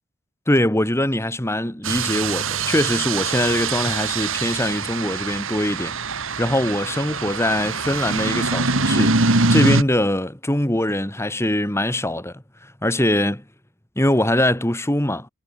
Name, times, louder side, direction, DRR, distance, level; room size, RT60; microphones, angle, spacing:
voice 1, 0.5-6.0 6.4-12.4 12.8-13.4 14.0-15.3, left 1 dB, 10° left, 2.2 m, -22 dB
sound 1, 1.8-9.8, right 3 dB, 65° right, 2.6 m, -23 dB
head